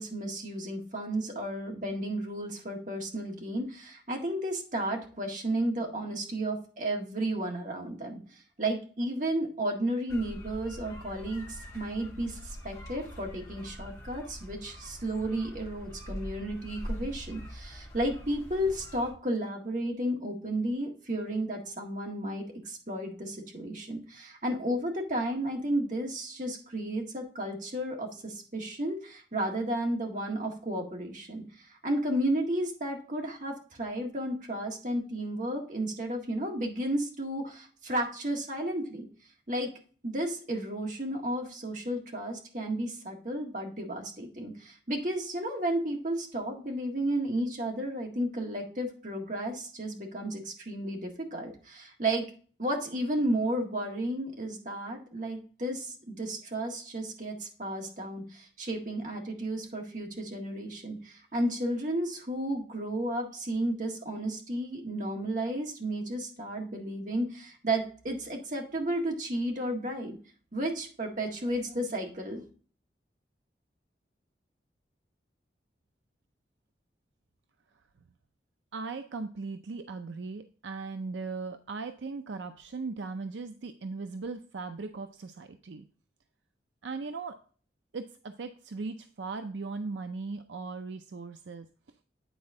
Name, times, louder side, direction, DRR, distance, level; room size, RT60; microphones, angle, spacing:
voice 1, 0.0-8.2 8.6-39.1 39.5-39.7 40.0-52.2 52.6-70.2 70.5-72.4, right 1 dB, 45° right, 1 dB, 1.8 m, -33 dB
sound 1, 10.1-19.1, equal, 20° left, 2.1 m, -43 dB
voice 2, 78.7-85.8 86.8-87.4 87.9-91.7, right 4 dB, 85° right, 8 dB, 0.5 m, -38 dB
9.2 x 4.3 x 3.7 m, 0.41 s
head